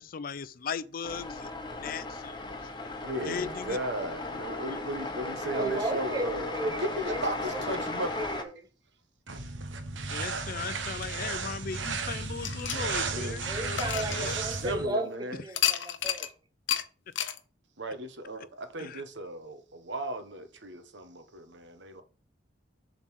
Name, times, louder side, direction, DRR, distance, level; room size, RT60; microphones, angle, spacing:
voice 1, 0.0-2.8 3.2-3.8 4.7-4.8 10.1-14.4 18.8-19.0, left 6 dB, 50° left, 0.4 m, -38 dB
sound 1, 1.0-8.4, left 2 dB, 25° left, 1.0 m, -36 dB
voice 2, 3.0-8.2 13.1-13.4 14.5-15.4 17.8-22.0, right 1 dB, 70° right, 1.2 m, -36 dB
voice 3, 5.2-7.6 8.0-8.7 13.5-16.3, right 2 dB, 20° right, 0.9 m, -35 dB
sound 2, 9.3-14.9, right 4 dB, 90° right, 1.1 m, -34 dB
sound 3, 12.4-14.8 15.5-16.3 16.7-16.8 17.2-17.4, left 10 dB, 85° left, 0.8 m, -31 dB
7.3 x 3.9 x 6.3 m
head